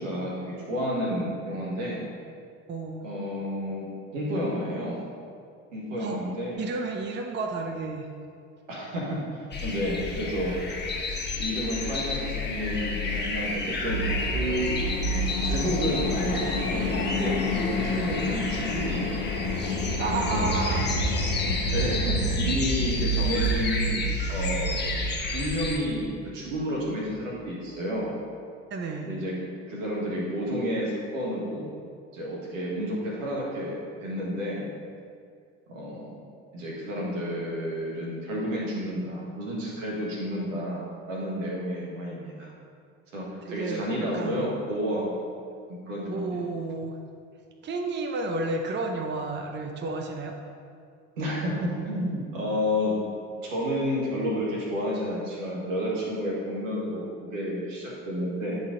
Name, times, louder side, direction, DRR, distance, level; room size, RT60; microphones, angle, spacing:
voice 1, 0.0-2.1 3.0-5.1 5.7-6.6 8.7-10.7 11.4-14.0 14.3-14.7 15.4-19.3 20.1-20.5 21.7-24.8 25.3-28.1 29.0-29.3 29.7-31.7 32.1-34.7 35.7-36.2 36.5-40.8 41.1-42.5 43.1-45.1 45.9-46.4 51.2-52.9 53.4-58.6, equal, 85° right, -4 dB, 1.6 m, -30 dB
voice 2, 2.7-3.0 6.0-6.2 6.5-8.1 20.0-20.9 28.7-29.1 43.4-44.5 46.1-46.9 47.6-50.4, right 3 dB, 30° right, 4 dB, 0.7 m, -31 dB
sound 1, 9.5-25.8, left 4 dB, 25° left, 1.2 m, -32 dB
sound 2, 13.8-26.3 26.5-26.6, equal, 75° left, 0.9 m, -29 dB
8.7 x 4.1 x 3.7 m, 2.3 s
hypercardioid pair, 65°, 38 cm